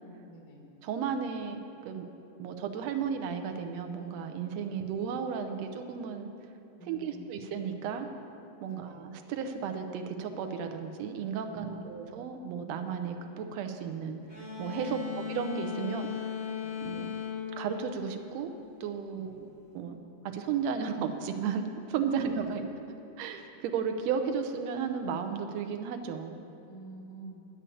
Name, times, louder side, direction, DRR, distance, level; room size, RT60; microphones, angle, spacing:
voice 1, 0.3-0.6 4.6-4.8 6.8-7.2 8.6-9.0 11.4-12.1 14.8-15.4 16.6-17.0 19.1-19.4 22.1-22.4 26.7-27.4, right 1 dB, 85° left, 0 dB, 3.2 m, -48 dB
voice 2, 0.8-2.1 2.4-6.3 6.9-8.1 8.6-14.2 14.6-16.3 16.8-17.1 17.6-18.5 18.8-19.5 19.7-20.0 20.2-22.6 23.2-26.4, right 6 dB, 75° right, 6 dB, 1.6 m, -34 dB
sound 1, 14.3-18.7, left 7 dB, 20° left, 2.2 m, -38 dB
9.7 x 7.2 x 8.4 m, 2.7 s
omnidirectional pair, 3.7 m